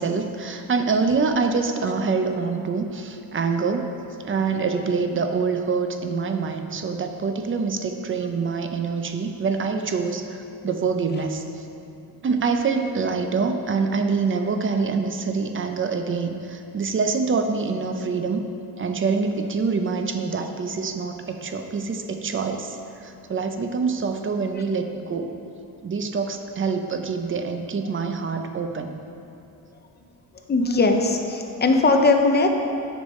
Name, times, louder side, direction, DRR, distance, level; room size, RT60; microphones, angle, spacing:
voice 1, 0.0-3.9 4.2-10.4 10.6-11.7 12.2-18.4 18.8-25.3 25.8-28.9, right 4 dB, 35° right, 6 dB, 0.5 m, -25 dB
voice 2, 30.5-32.5, left 3 dB, 25° left, 4 dB, 0.6 m, -19 dB
9.4 x 5.3 x 4.2 m, 2.6 s
wide cardioid pair, 145°, 38 cm